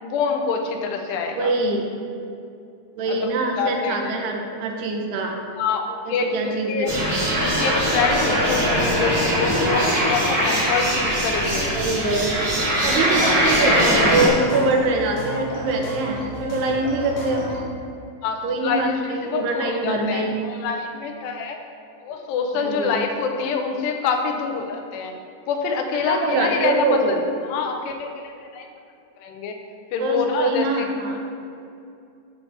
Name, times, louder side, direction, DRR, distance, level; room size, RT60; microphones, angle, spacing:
voice 1, 0.0-1.5 3.1-4.2 5.6-6.9 7.4-11.7 13.0-13.4 18.2-21.6 22.0-25.1 25.5-28.7 29.2-29.6 29.9-30.7, left 5 dB, 90° left, 3 dB, 3.0 m, -26 dB
voice 2, 1.3-1.9 3.0-5.4 6.1-7.4 11.7-12.3 12.8-17.6 18.4-20.4 22.5-23.0 26.1-27.2 30.0-31.2, right 2 dB, 80° right, 1 dB, 3.0 m, -24 dB
sound 1, 6.9-14.3, equal, 35° right, 1.6 m, -21 dB
sound 2, 12.4-17.6, left 1 dB, 65° left, 3.7 m, -34 dB
12.0 x 7.1 x 3.5 m, 2.6 s
omnidirectional pair, 4.7 m